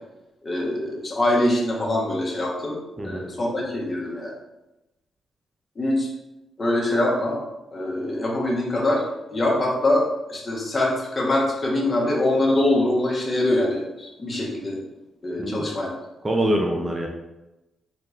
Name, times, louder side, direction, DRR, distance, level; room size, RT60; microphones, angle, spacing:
voice 1, 0.4-2.8 3.0-4.3 5.8-6.1 6.6-7.4 7.7-9.0 9.3-14.8 15.2-15.9, left 1 dB, 35° left, -3 dB, 1.2 m, -23 dB
voice 2, 16.2-17.1, right 1 dB, 20° right, 1 dB, 0.5 m, -24 dB
4.2 x 2.5 x 3.2 m, 0.99 s
cardioid pair, 75°, 0 cm